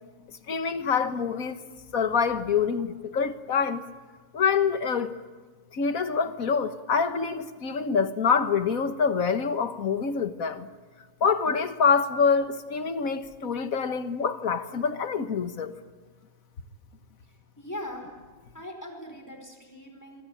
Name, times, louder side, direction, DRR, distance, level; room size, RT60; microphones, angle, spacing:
voice 1, 0.5-1.6 1.9-3.8 4.3-5.1 5.7-10.7 11.2-15.7, left 6 dB, 85° left, 1.8 m, -26 dB
voice 2, 17.6-18.1 18.5-20.2, left 1 dB, 10° left, 4.9 m, -40 dB
25.5 x 23.5 x 8.8 m
omnidirectional pair, 1.4 m